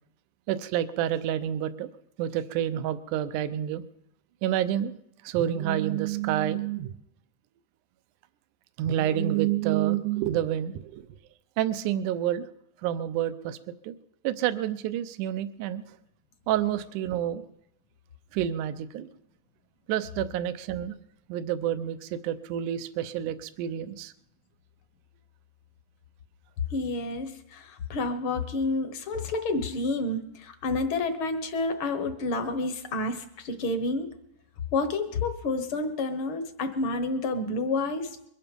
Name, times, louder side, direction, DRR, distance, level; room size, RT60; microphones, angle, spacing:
voice 1, 0.5-1.9 2.2-3.8 4.4-5.0 5.2-6.9 8.8-11.1 11.6-12.5 12.8-13.6 13.8-14.0 14.2-15.8 16.5-17.5 18.3-19.1 19.9-21.0 21.3-24.1, right 11 dB, 80° right, 12 dB, 2.2 m, -28 dB
voice 2, 26.7-34.1 34.7-38.2, left 2 dB, 55° left, 8 dB, 1.6 m, -29 dB
22.5 x 11.0 x 5.3 m, 0.77 s
omnidirectional pair, 3.7 m